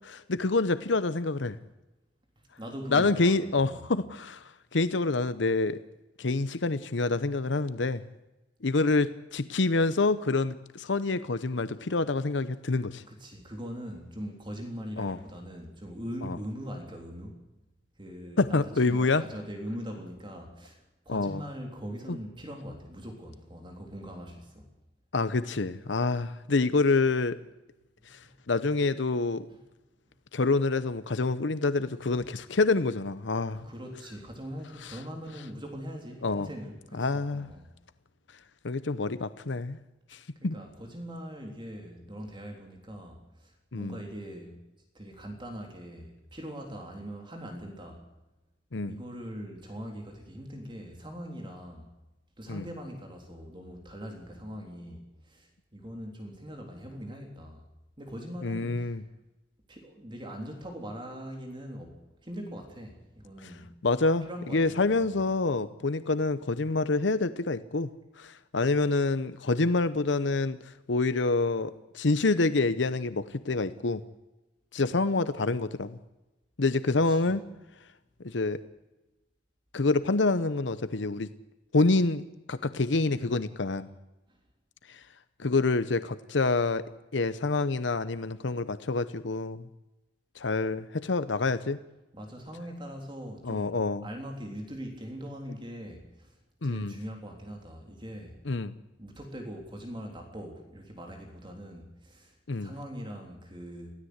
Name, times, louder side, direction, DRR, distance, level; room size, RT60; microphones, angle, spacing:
voice 1, 0.0-1.6 2.9-5.8 6.2-8.0 8.6-13.0 15.0-15.2 16.2-16.4 18.4-19.2 21.1-21.4 25.1-27.4 28.1-28.2 28.5-29.5 30.3-33.6 34.8-35.0 36.2-36.5 37.0-37.5 38.6-39.8 40.1-40.6 43.7-44.0 48.7-48.9 52.5-52.6 58.4-59.0 63.4-63.5 63.8-67.9 68.2-74.0 74.7-76.0 76.6-77.4 78.2-78.6 79.7-81.3 81.7-82.2 82.5-83.9 84.9-85.0 85.4-86.8 87.1-89.7 90.4-91.8 93.4-94.0 96.6-96.9 98.5-98.7 102.5-102.7, left 3 dB, 85° left, 13 dB, 0.8 m, -27 dB
voice 2, 2.6-3.8 13.1-17.4 18.0-24.7 28.2-28.4 32.2-32.3 33.5-37.7 40.4-44.6 44.9-48.0 48.8-51.9 52.4-57.6 58.0-59.0 59.7-63.7 64.2-65.2 76.9-77.4 84.3-84.4 92.1-93.8 94.0-96.4 96.6-98.4 99.0-103.9, equal, 25° right, 2 dB, 3.5 m, -41 dB
23.0 x 16.0 x 8.1 m, 1.0 s
head